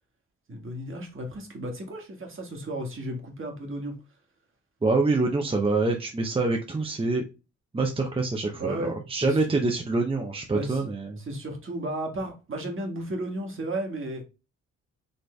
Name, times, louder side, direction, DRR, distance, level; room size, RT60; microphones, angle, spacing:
voice 1, 0.5-4.0 8.6-8.9 9.2-9.5 10.5-10.9 11.2-14.2, right 1 dB, 40° right, 1.7 m, -34 dB
voice 2, 4.8-7.2 7.7-11.2, right 3 dB, 20° right, 0.7 m, -25 dB
4.3 x 3.2 x 3.3 m
cardioid pair, 85°, 30 cm